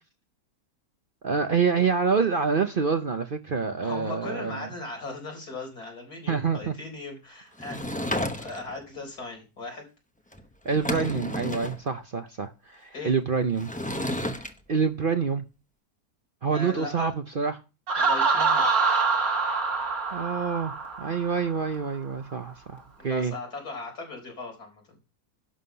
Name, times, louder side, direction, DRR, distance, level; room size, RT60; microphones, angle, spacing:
voice 1, 1.2-4.7 6.3-6.7 10.6-13.7 14.7-15.4 16.4-17.6 20.1-23.3, right 5 dB, 45° right, 0.7 m, -27 dB
voice 2, 3.8-7.8 8.4-9.9 10.9-11.1 12.9-13.1 16.5-17.1 18.0-18.7 23.0-25.0, left 2 dB, 80° left, 4.7 m, -38 dB
Sliding door / Wood, 7.6-8.8 10.3-10.4 10.7-11.8 13.6-14.5, left 1 dB, 5° left, 0.6 m, -31 dB
Laughter, 17.9-21.6, right 4 dB, 70° right, 2.4 m, -25 dB
11.5 x 5.7 x 5.7 m
omnidirectional pair, 1.6 m